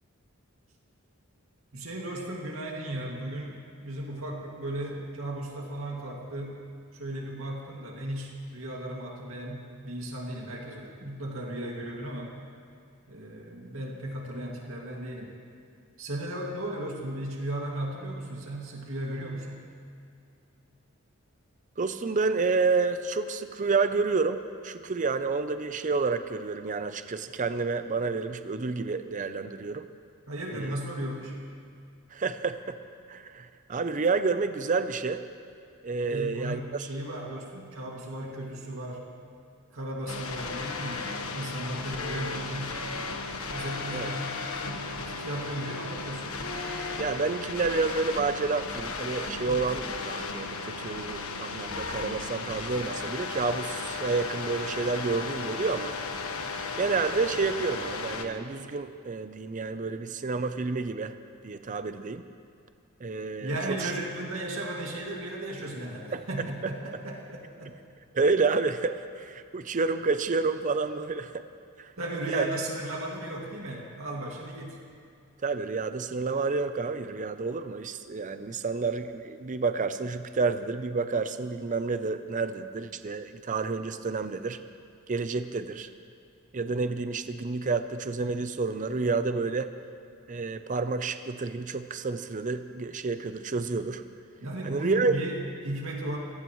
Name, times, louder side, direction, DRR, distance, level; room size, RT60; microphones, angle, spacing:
voice 1, 1.7-6.6 6.9-12.3 13.1-15.3 16.0-19.6 30.3-31.4 36.1-39.0 39.7-42.8 43.3-44.9 45.2-46.3 63.4-67.7 72.0-74.8 94.4-96.2, right 1 dB, 75° right, -2 dB, 2.3 m, -36 dB
voice 2, 21.8-29.9 30.5-30.8 32.1-32.8 33.1-35.2 35.8-36.6 43.9-44.1 47.0-55.9 56.8-61.2 61.4-62.3 63.0-63.9 66.1-66.5 68.1-71.5 71.8-71.9 72.3-72.5 75.4-84.6 85.1-85.9 86.5-89.7 90.3-94.0 94.6-95.1, right 4 dB, 35° right, 10 dB, 0.5 m, -29 dB
sound 1, 40.1-58.3, left 4 dB, 85° left, 1.3 m, -35 dB
26.0 x 17.0 x 3.1 m, 2.4 s
head